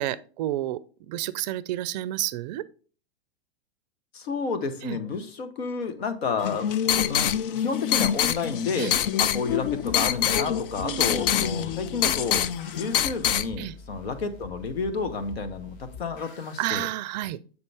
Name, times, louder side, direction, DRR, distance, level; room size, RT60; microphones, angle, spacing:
voice 1, 0.0-2.6 4.8-5.0 8.8-8.9 10.8-11.1 13.6-13.8 16.6-17.4, right 14 dB, 45° right, 0.4 m, -30 dB
voice 2, 4.1-8.9 9.2-12.5 12.8-16.9, left 4 dB, 75° left, 1.2 m, -30 dB
sound 1, 6.4-13.5, left 10 dB, 60° left, 0.5 m, -25 dB
sound 2, 9.5-16.7, left 4 dB, 40° left, 1.8 m, -45 dB
6.8 x 5.3 x 3.4 m
hypercardioid pair, 115°, 31 cm